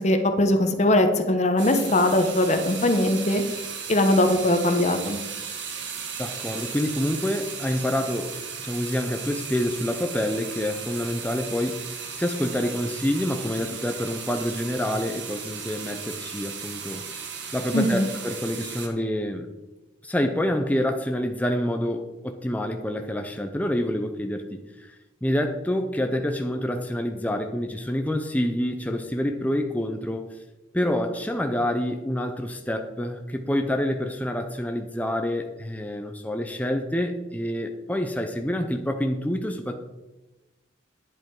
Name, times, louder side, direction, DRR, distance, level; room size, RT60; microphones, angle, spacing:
voice 1, 0.0-3.4 3.9-5.2 17.7-18.1, left 1 dB, 35° left, 6 dB, 1.0 m, -21 dB
sound 1, 1.6-18.9, right 6 dB, 65° right, 1.4 m, -36 dB
voice 2, 6.2-8.3 8.6-11.9 12.1-17.0 17.5-19.5 20.0-30.3 30.7-39.8, left 1 dB, 10° left, 5 dB, 0.6 m, -27 dB
9.8 x 7.5 x 4.7 m, 1.1 s
head